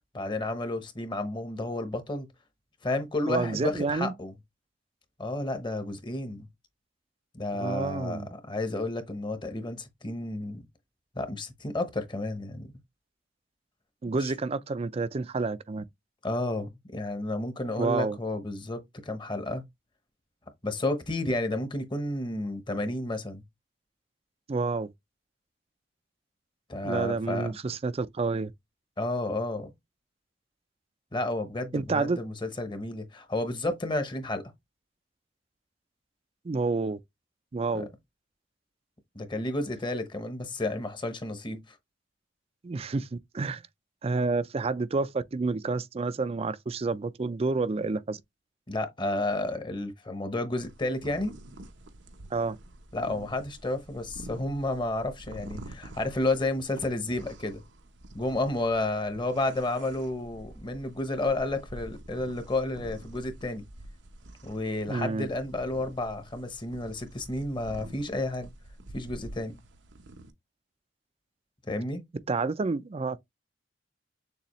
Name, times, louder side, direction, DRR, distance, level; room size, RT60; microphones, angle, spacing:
voice 1, 0.1-2.3 2.8-4.3 5.2-6.5 7.3-10.6 11.1-12.7 14.0-14.3 16.2-19.6 20.6-23.4 26.7-27.5 29.0-29.7 31.1-34.4 37.7-37.8 39.1-41.6 48.7-51.3 52.9-57.6 58.1-63.6 64.4-68.5 68.9-69.6 71.7-72.0, left 2 dB, 25° left, 0.9 m, -31 dB
voice 2, 3.3-4.1 7.5-8.3 14.0-15.8 17.8-18.2 24.5-24.9 26.8-28.5 31.7-32.2 36.4-37.0 37.5-37.9 42.6-43.6 44.0-48.2 52.3-52.6 64.9-65.3 72.3-73.2, right 3 dB, 35° right, 0.4 m, -29 dB
sound 1, 50.6-70.3, right 1 dB, 85° right, 0.9 m, -47 dB
6.8 x 2.4 x 3.0 m
head